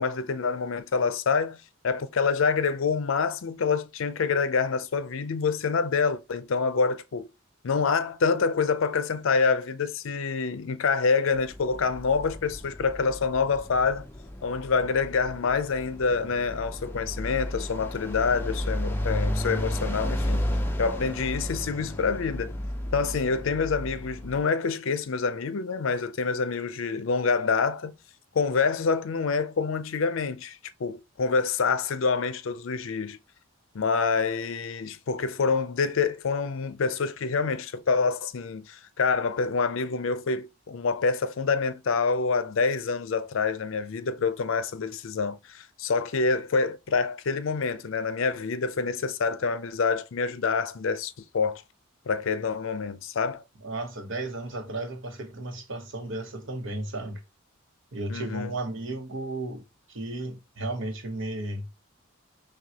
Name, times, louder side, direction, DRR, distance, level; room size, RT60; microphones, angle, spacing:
voice 1, 0.0-1.6 1.8-7.3 7.6-14.1 14.4-20.5 20.8-22.6 22.9-27.9 28.3-33.2 33.7-51.6 52.1-53.4 58.1-58.6, left 5 dB, 65° left, 0.5 m, -27 dB
sound 1, 11.3-24.4, equal, 10° left, 0.5 m, -33 dB
voice 2, 53.6-57.2 57.9-59.6 59.9-61.7, right 2 dB, 65° right, 1.0 m, -34 dB
6.1 x 2.3 x 2.8 m
head